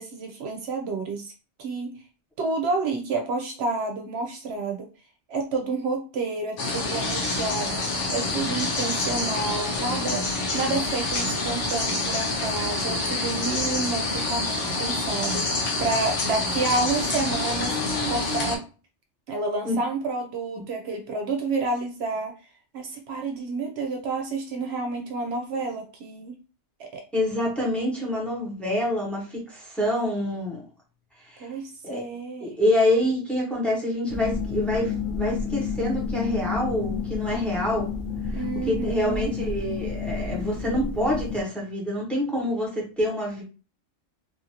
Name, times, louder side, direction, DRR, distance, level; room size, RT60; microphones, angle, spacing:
voice 1, 0.0-1.3 1.6-2.0 2.4-4.9 5.3-17.8 18.1-18.6 19.3-22.3 22.7-26.3 26.8-27.0 31.4-32.6 38.3-39.3, right 3 dB, 70° right, 3 dB, 0.8 m, -29 dB
sound 1, 6.6-18.6, left 2 dB, 85° left, 1.1 m, -27 dB
voice 2, 27.1-30.6 31.3-31.5 31.8-32.1 32.4-37.9 38.3-43.4, left 1 dB, ahead, -3 dB, 0.9 m, -26 dB
sound 2, 34.1-41.4, left 6 dB, 50° left, 1.0 m, -30 dB
3.0 x 2.6 x 2.8 m, 0.34 s
omnidirectional pair, 1.2 m